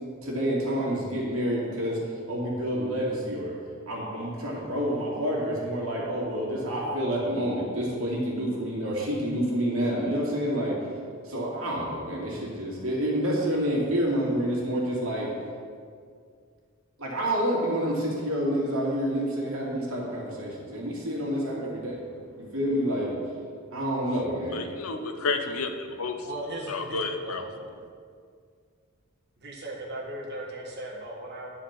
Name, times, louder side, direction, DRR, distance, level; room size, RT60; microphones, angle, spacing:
voice 1, 0.2-2.0 2.3-3.5 3.9-10.8 11.2-15.3 17.0-22.0 22.4-23.2 23.7-24.6, equal, 70° right, -4 dB, 2.4 m, -28 dB
voice 2, 24.5-26.3 26.7-27.4, left 3 dB, 80° left, 6 dB, 0.8 m, -31 dB
voice 3, 26.2-27.5 29.4-31.5, right 1 dB, 50° right, -3 dB, 1.9 m, -37 dB
10.0 x 5.0 x 5.9 m, 2.1 s
head